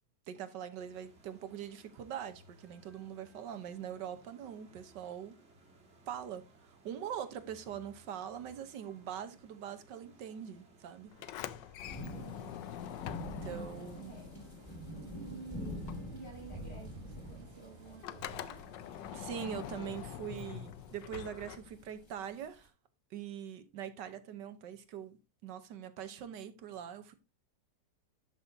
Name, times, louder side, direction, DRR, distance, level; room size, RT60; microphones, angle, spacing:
voice 1, 0.3-5.4 6.1-11.1 13.2-14.1 19.1-22.7 23.1-27.1, right 9 dB, 80° right, 1.6 m, -43 dB
sound 1, 0.7-19.3, right 2 dB, 40° right, 1.9 m, -62 dB
Sliding door, 11.1-15.4 15.6-22.0, left 11 dB, 85° left, 1.3 m, -45 dB
sound 2, 11.8-22.7, equal, 15° left, 2.6 m, -47 dB
voice 2, 12.0-12.6 13.9-14.3 15.2-18.7, right 4 dB, 65° left, 6.2 m, -51 dB
11.5 x 6.1 x 2.7 m
omnidirectional pair, 1.9 m